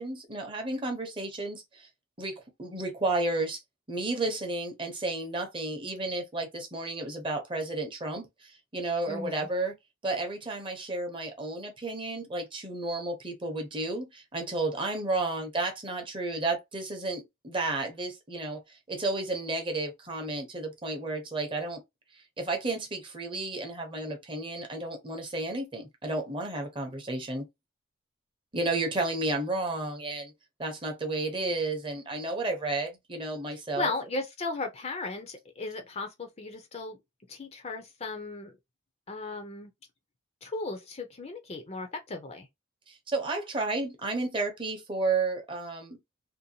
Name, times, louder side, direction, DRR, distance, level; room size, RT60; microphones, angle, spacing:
voice 1, 0.0-1.9 2.2-3.6 3.9-9.7 10.0-18.6 18.9-21.8 22.4-27.5 28.5-30.3 30.6-33.9 42.9-46.0, right 2 dB, 25° right, 0.7 m, -32 dB
voice 2, 9.1-9.5 33.8-37.0 37.3-38.5 39.1-39.7 40.4-42.5, left 3 dB, 30° left, 0.5 m, -36 dB
2.6 x 2.2 x 2.7 m
head